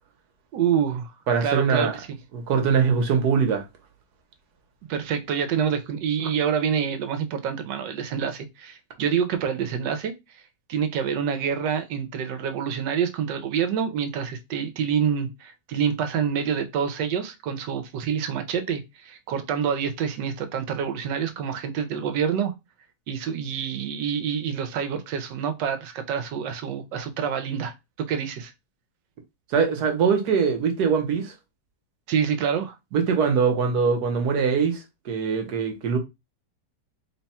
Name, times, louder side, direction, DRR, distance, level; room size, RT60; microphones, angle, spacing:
voice 1, 0.5-1.1 1.4-2.1 4.9-10.1 10.7-22.5 23.1-27.7 28.1-28.5 32.1-32.8, right 7 dB, 85° right, 1.4 m, -27 dB
voice 2, 1.3-1.9 2.3-3.7 29.5-31.3 32.9-36.0, right 6 dB, 65° right, 1.4 m, -22 dB
3.7 x 2.3 x 4.1 m
omnidirectional pair, 1.9 m